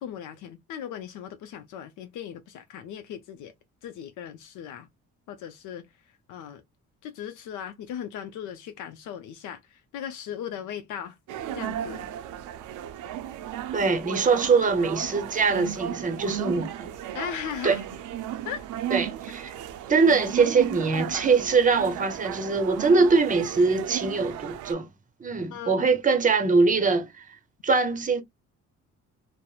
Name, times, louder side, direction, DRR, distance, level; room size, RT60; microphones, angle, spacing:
voice 1, 0.0-3.5 3.8-4.9 5.3-5.9 6.3-6.6 7.0-11.2 11.5-12.1 17.1-17.9 18.5-18.7 25.5-25.9, left 9 dB, 80° left, 0.5 m, -37 dB
sound 1, 11.3-24.7, right 11 dB, 90° right, 0.5 m, -35 dB
voice 2, 13.7-16.9 17.6-17.8 18.9-19.5 19.9-24.9 25.2-27.2 27.6-28.2, right 4 dB, 25° right, 0.7 m, -22 dB
2.9 x 2.0 x 2.3 m
cardioid pair, 90°, 30 cm